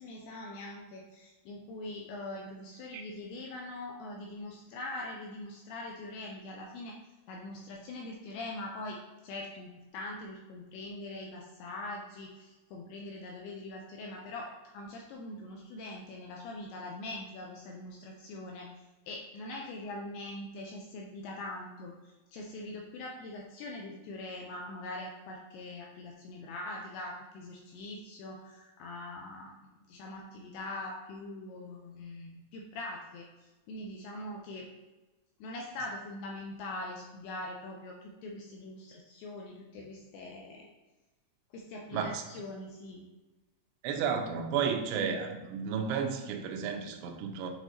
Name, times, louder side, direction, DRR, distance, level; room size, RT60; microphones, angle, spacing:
voice 1, 0.0-7.0 7.3-18.7 19.1-29.5 29.8-34.7 35.4-40.7 41.5-43.0, left 2 dB, 85° left, 0 dB, 2.3 m, -42 dB
voice 2, 41.9-42.2 43.8-47.5, right 6 dB, 80° right, 4 dB, 2.6 m, -32 dB
7.9 x 4.1 x 2.9 m, 1.1 s
omnidirectional pair, 5.3 m